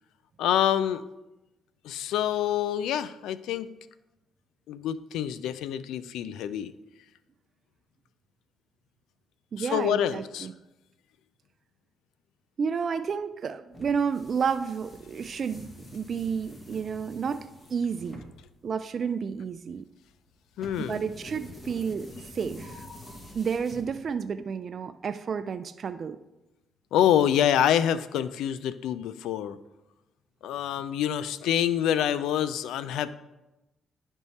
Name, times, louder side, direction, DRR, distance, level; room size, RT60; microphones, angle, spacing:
voice 1, 0.4-1.0 1.8-3.7 4.7-6.7 9.6-10.5 20.6-21.1 26.9-29.6 30.4-33.2, left 10 dB, 85° left, 14 dB, 0.3 m, -26 dB
voice 2, 9.5-10.5 12.6-18.2 18.6-19.8 20.9-22.8 23.3-26.2, right 6 dB, 50° right, 10 dB, 0.3 m, -31 dB
sound 1, 13.7-24.3, left 1 dB, 25° left, 1.3 m, -47 dB
10.5 x 3.6 x 4.1 m, 1.0 s
cardioid pair, 90°, 0 cm